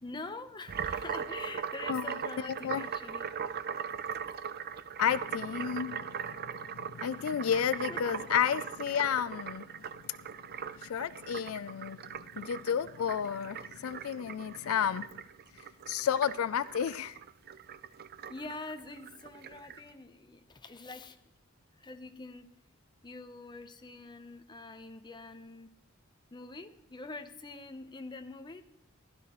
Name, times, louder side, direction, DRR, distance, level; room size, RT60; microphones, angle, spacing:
voice 1, 0.0-3.3 7.6-8.0 16.2-16.3 18.3-21.2 21.8-22.5 23.0-25.7 26.3-28.6, left 3 dB, 20° left, 0.8 m, -45 dB
sound 1, 0.7-19.8, right 7 dB, 50° right, 0.5 m, -40 dB
voice 2, 5.0-10.1 10.8-15.2 15.9-17.2, left 8 dB, 80° left, 0.4 m, -32 dB
15.5 x 12.0 x 3.1 m
head